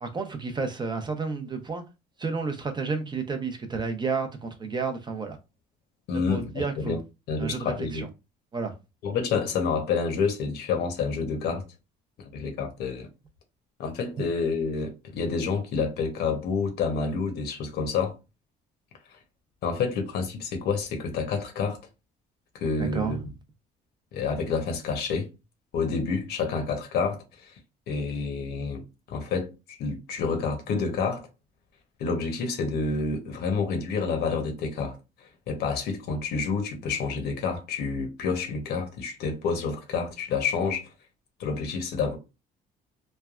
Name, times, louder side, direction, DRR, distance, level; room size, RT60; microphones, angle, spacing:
voice 1, 0.0-1.8 2.2-5.4 6.1-7.0 7.4-8.1 8.5-8.7 22.9-23.2, right 4 dB, 25° right, 0.6 m, -31 dB
voice 2, 6.1-7.0 7.3-8.0 9.0-11.6 12.2-13.1 13.8-18.2 19.6-21.8 22.5-23.2 24.1-25.3 25.7-27.5 27.9-31.3 32.0-35.0 35.5-40.9 41.4-42.2, left 5 dB, 75° left, 0.9 m, -28 dB
3.2 x 2.2 x 2.3 m
cardioid pair, 110°, 17 cm